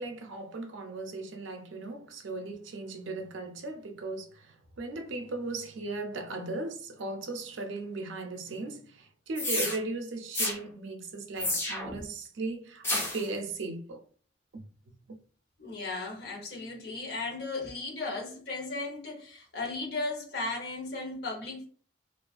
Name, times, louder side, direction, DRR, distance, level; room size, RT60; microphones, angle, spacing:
voice 1, 0.0-14.0 14.5-14.6 15.1-15.2, right 3 dB, 80° right, 0.5 m, -37 dB
sound 1, 9.4-9.8 10.3-10.6 11.4-12.0 12.8-13.3, left 2 dB, 10° left, 0.4 m, -30 dB
voice 2, 15.6-21.7, left 3 dB, 55° left, 0.7 m, -36 dB
2.4 x 2.3 x 2.3 m
head